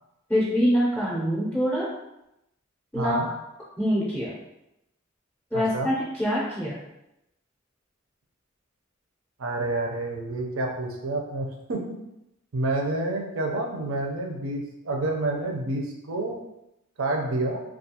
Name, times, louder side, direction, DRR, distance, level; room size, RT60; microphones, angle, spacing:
voice 1, 0.3-1.9 2.9-3.2 3.8-4.3 5.5-6.7, equal, 5° left, -8 dB, 0.5 m, -24 dB
voice 2, 2.9-3.3 5.5-5.9 9.4-12.0 12.5-16.3 17.0-17.6, right 2 dB, 75° right, 1 dB, 0.5 m, -29 dB
2.3 x 2.3 x 2.8 m, 0.87 s
head